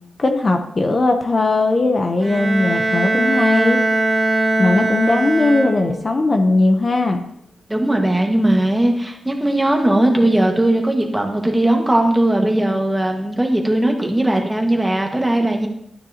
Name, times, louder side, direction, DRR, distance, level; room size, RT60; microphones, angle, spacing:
voice 1, 0.2-3.8 4.6-7.2, left 2 dB, 35° left, 4 dB, 0.8 m, -18 dB
Bowed string instrument, 2.2-6.2, right 2 dB, 35° right, 1.2 m, -20 dB
voice 2, 7.7-15.7, right 1 dB, 10° right, 2 dB, 1.6 m, -18 dB
11.5 x 9.3 x 2.9 m, 0.76 s
wide cardioid pair, 110°, 0 cm